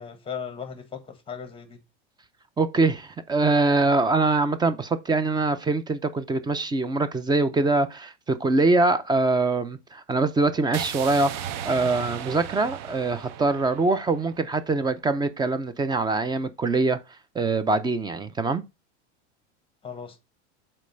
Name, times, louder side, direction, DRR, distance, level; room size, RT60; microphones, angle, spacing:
voice 1, 0.0-1.8 19.8-20.2, left 7 dB, 15° left, 1.3 m, -37 dB
voice 2, 2.6-17.0 17.3-18.6, right 3 dB, 10° right, 0.5 m, -23 dB
sound 1, 10.7-14.8, right 10 dB, 55° right, 0.7 m, -36 dB
5.2 x 4.3 x 5.1 m
supercardioid pair, 120°, 34 cm